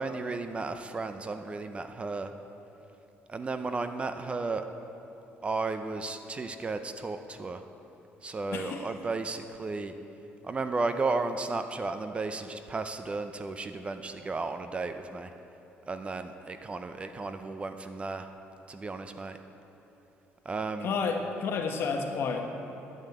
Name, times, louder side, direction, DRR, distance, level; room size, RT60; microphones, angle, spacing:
voice 1, 0.0-2.3 3.3-4.6 5.4-7.6 8.2-9.9 10.4-15.3 15.9-18.3 18.7-19.4 20.4-20.9, right 3 dB, 25° right, 8 dB, 0.6 m, -34 dB
voice 2, 8.5-8.8 20.8-22.5, left 5 dB, 60° left, 3 dB, 1.3 m, -30 dB
9.6 x 8.9 x 7.9 m, 3.0 s
cardioid pair, 115°, 5 cm